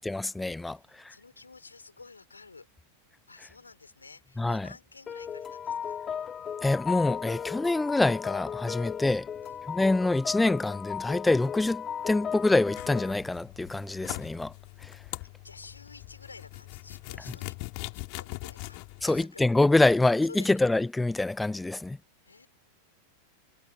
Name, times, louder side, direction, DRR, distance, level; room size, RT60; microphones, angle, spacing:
voice 1, 0.0-0.8 4.4-4.7 6.6-9.3 9.7-14.5 14.8-15.0 19.0-22.0, left 2 dB, 5° left, 0.4 m, -25 dB
voice 2, 0.8-2.7 3.3-6.0 8.7-9.0 9.4-9.6 15.4-17.6 17.9-19.4 20.3-20.5 22.2-22.5, left 4 dB, 80° left, 4.8 m, -50 dB
sound 1, 5.1-13.1, left 8 dB, 25° left, 2.0 m, -36 dB
sound 2, 12.7-19.2, left 40 dB or more, 45° left, 4.2 m, -42 dB
figure-of-eight pair, 90°, 0 cm